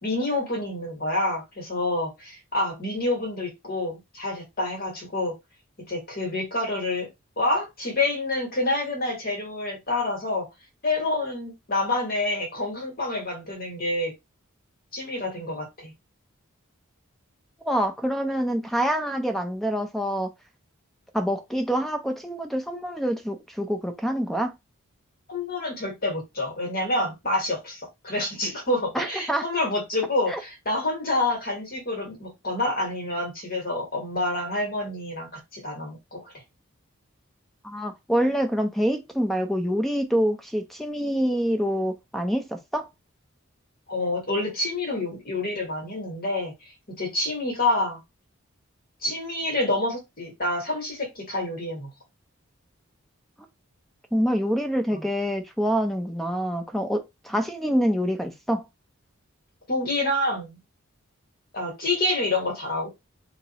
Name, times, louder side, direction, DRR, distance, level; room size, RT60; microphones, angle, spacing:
voice 1, 0.0-5.3 5.9-7.1 7.4-10.5 10.8-14.1 14.9-15.9 25.3-36.3 43.9-46.5 46.9-48.0 49.0-51.9 54.9-55.0 59.7-60.6 61.5-62.9, left 2 dB, 45° left, 1.7 m, -28 dB
voice 2, 17.6-20.3 21.1-24.5 28.9-29.4 30.3-30.4 37.6-42.9 54.1-58.6, equal, ahead, 0.6 m, -26 dB
2.9 x 2.8 x 4.1 m
head